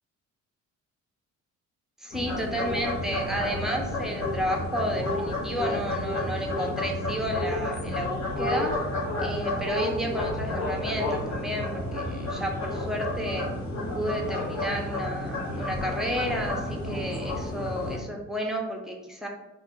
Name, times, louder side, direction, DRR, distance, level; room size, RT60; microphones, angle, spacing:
voice 1, 2.0-8.7 9.2-13.5 13.9-19.3, equal, ahead, 0 dB, 0.6 m, -32 dB
sound 1, 2.1-18.0, left 1 dB, 65° left, 1.1 m, -31 dB
2.5 x 2.4 x 3.7 m, 0.99 s
cardioid pair, 90°, 30 cm